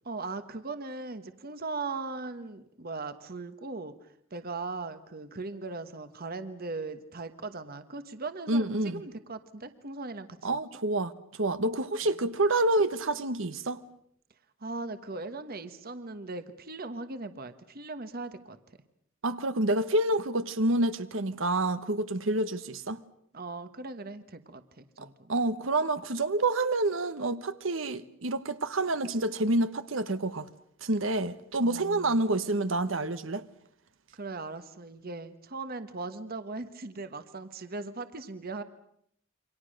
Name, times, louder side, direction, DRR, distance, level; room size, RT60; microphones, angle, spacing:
voice 1, 0.0-10.6 14.6-18.8 22.2-22.4 23.3-25.3 31.6-32.2 34.1-38.6, right 3 dB, 45° right, 1.3 m, -39 dB
voice 2, 8.5-9.0 10.4-13.8 19.2-23.0 25.3-30.5 30.8-33.5, right 2 dB, 65° right, 1.2 m, -28 dB
28.5 x 24.5 x 6.5 m
head